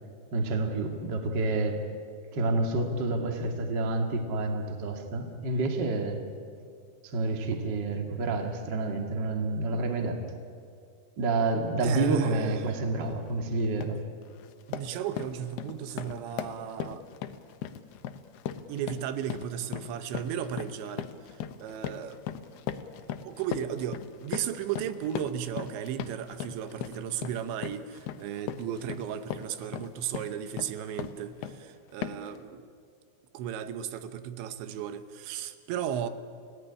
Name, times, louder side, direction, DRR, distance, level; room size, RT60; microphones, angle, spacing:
voice 1, 0.3-1.8 2.3-6.2 7.0-10.2 11.2-14.0 14.8-14.9, right 2 dB, 35° right, 4 dB, 2.0 m, -29 dB
voice 2, 11.8-12.6 14.7-17.0 18.7-22.2 23.2-32.7 33.3-36.1, right 9 dB, 85° right, 11 dB, 3.3 m, -35 dB
sound 1, 13.0-13.2 13.6-14.0 14.4-31.6 32.0-32.4, left 9 dB, 75° left, 2.7 m, -39 dB
29.0 x 17.0 x 9.9 m, 2.3 s
omnidirectional pair, 5.1 m